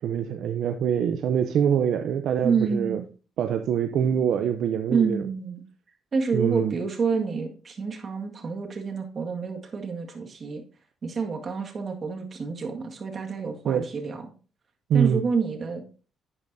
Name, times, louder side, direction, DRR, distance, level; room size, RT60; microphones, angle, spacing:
voice 1, 0.0-3.0 3.4-5.2 6.3-6.7 13.7-13.9 14.9-15.2, right 8 dB, 75° right, 7 dB, 0.6 m, -24 dB
voice 2, 2.4-3.1 4.9-5.6 6.1-10.6 11.0-14.3 14.9-15.8, right 5 dB, 45° right, 3 dB, 1.8 m, -28 dB
10.5 x 8.8 x 2.7 m, 0.36 s
cardioid pair, 90°, 0 cm